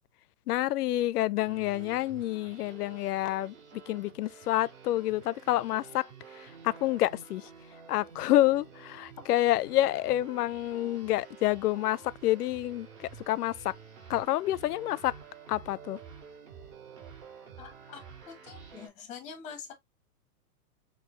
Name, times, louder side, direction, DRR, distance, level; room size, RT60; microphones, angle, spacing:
voice 1, 0.5-6.1 6.3-7.5 7.9-13.8 14.1-15.1 15.5-16.0, left 14 dB, 80° left, 0.5 m, -28 dB
sound 1, 1.4-18.9, right 6 dB, 50° right, 2.8 m, -50 dB
voice 2, 17.6-19.7, left 6 dB, 15° left, 0.7 m, -45 dB
6.2 x 2.7 x 3.0 m
hypercardioid pair, 160°, 45 cm